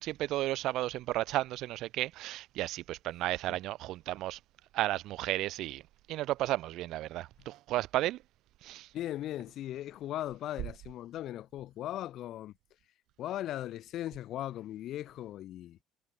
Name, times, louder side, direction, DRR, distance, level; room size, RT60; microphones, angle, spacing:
voice 1, 0.0-4.4 4.7-5.8 6.1-8.2 8.6-8.9, right 16 dB, 65° right, 0.7 m, -33 dB
voice 2, 8.9-12.5 13.2-15.8, left 13 dB, 60° left, 5.3 m, -38 dB
cardioid pair, 120°, 0 cm